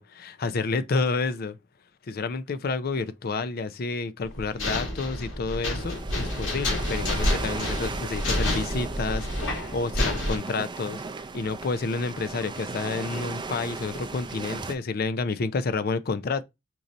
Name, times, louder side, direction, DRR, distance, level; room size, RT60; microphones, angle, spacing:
voice 1, 0.0-1.6 2.1-11.0 11.3-16.4, left 4 dB, 50° left, 0.4 m, -29 dB
sound 1, 4.2-10.4, left 1 dB, 75° left, 2.0 m, -29 dB
sound 2, 5.8-14.7, right 4 dB, 25° right, 0.4 m, -36 dB
4.6 x 2.6 x 4.0 m
head